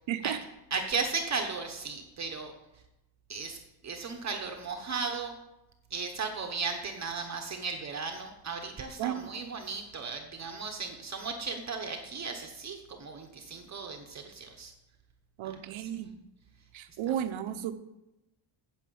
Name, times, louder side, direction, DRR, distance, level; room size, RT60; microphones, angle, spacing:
voice 1, 0.1-0.4 9.0-9.5 15.4-16.1 16.7-17.7, right 10 dB, 70° right, 9 dB, 1.0 m, -34 dB
voice 2, 0.7-2.5 3.3-3.6 3.8-5.3 5.9-14.7 15.4-16.1 17.1-17.2, right 4 dB, 35° right, 4 dB, 1.1 m, -36 dB
9.1 x 7.5 x 7.8 m, 0.95 s
cardioid pair, 170°, 49 cm